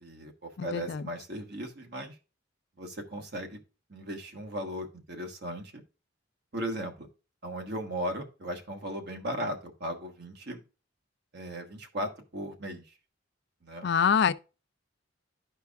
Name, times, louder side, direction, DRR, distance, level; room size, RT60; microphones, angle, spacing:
voice 1, 0.0-2.2 2.8-3.6 3.9-5.7 6.5-7.1 7.4-10.6 11.3-12.8 13.6-13.9, equal, 60° right, 1.3 m, -37 dB
voice 2, 0.6-1.0 13.8-14.3, left 7 dB, 60° left, 0.4 m, -25 dB
12.0 x 4.5 x 2.3 m
head